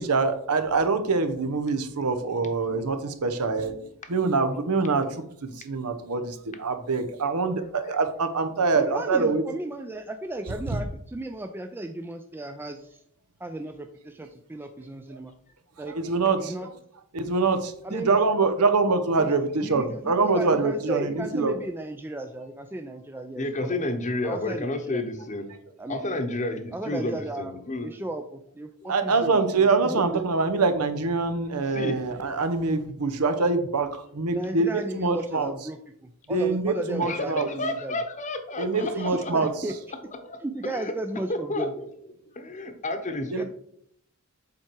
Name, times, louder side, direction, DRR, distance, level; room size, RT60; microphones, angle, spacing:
voice 1, 0.0-9.4 15.8-16.7 17.1-21.5 28.9-35.5 36.3-37.5 38.6-39.5 43.3-43.4, right 4 dB, 90° right, 9 dB, 0.9 m, -25 dB
voice 2, 8.8-13.0 13.4-15.3 15.8-16.0 16.4-16.7 17.8-18.5 19.2-19.3 19.6-23.8 24.2-25.0 25.8-26.1 26.7-27.5 27.8-30.2 34.3-38.0 38.8-39.7 40.4-41.7 43.3-43.4, right 1 dB, 10° right, 6 dB, 0.3 m, -35 dB
voice 3, 23.3-25.5 25.9-27.9 28.8-28.9 31.7-32.0 37.0-39.5 40.2-40.9 41.3-41.9 42.3-43.4, left 2 dB, 35° left, 7 dB, 0.9 m, -31 dB
7.4 x 4.6 x 4.5 m, 0.68 s
head